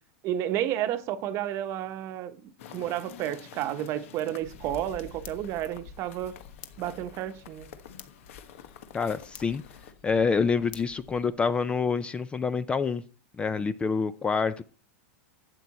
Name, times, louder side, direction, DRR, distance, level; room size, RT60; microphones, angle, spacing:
voice 1, 0.2-6.3 6.8-7.7, right 12 dB, 40° right, 1.0 m, -31 dB
sound 1, 2.6-9.9, left 9 dB, 75° left, 1.3 m, -49 dB
sound 2, 4.4-11.3, left 8 dB, 55° left, 1.4 m, -49 dB
voice 2, 8.9-9.6 10.0-13.0 13.4-14.6, left 5 dB, 15° left, 0.4 m, -27 dB
12.0 x 8.1 x 4.2 m
supercardioid pair, 145°, 7 cm